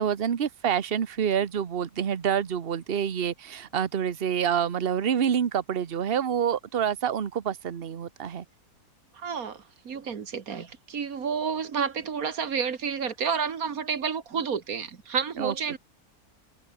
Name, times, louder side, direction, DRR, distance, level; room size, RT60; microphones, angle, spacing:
voice 1, 0.0-8.4 15.4-15.5, right 8 dB, 45° right, 1.2 m, -27 dB
voice 2, 9.1-15.8, right 6 dB, 75° right, 2.1 m, -30 dB
omnidirectional pair, 1.5 m